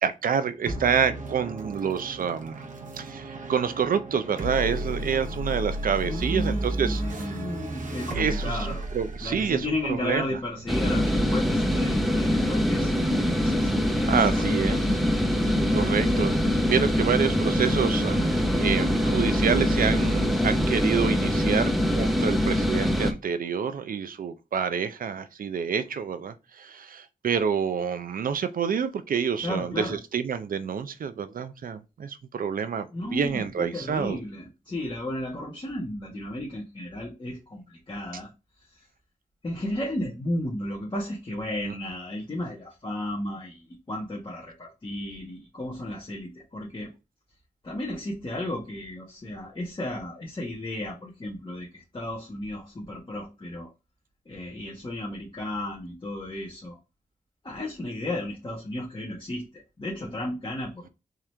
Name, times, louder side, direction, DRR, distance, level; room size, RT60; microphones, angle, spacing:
voice 1, 0.0-2.6 2.9-7.0 8.1-8.6 8.9-10.2 14.1-14.8 15.5-16.4 16.7-34.2 41.6-41.7, right 7 dB, 80° right, 0.5 m, -28 dB
sound 1, 0.7-11.4, right 1 dB, 65° right, 1.0 m, -34 dB
voice 2, 6.0-8.8 9.2-13.7 14.0-14.9 29.4-30.0 32.9-38.3 39.4-46.9 47.6-53.7 54.3-56.8 57.4-60.9, left 1 dB, 35° left, 1.2 m, -34 dB
sound 2, 10.7-23.1, equal, ahead, 0.7 m, -24 dB
3.7 x 3.0 x 3.2 m
wide cardioid pair, 85°, 14 cm